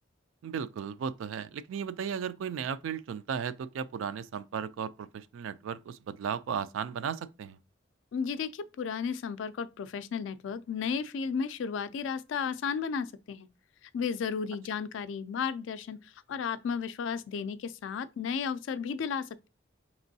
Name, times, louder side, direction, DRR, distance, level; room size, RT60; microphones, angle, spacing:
voice 1, 0.4-7.6, right 7 dB, 80° right, 0.3 m, -35 dB
voice 2, 8.1-13.5 13.9-19.5, left 6 dB, 70° left, 0.3 m, -34 dB
5.1 x 3.0 x 2.7 m
head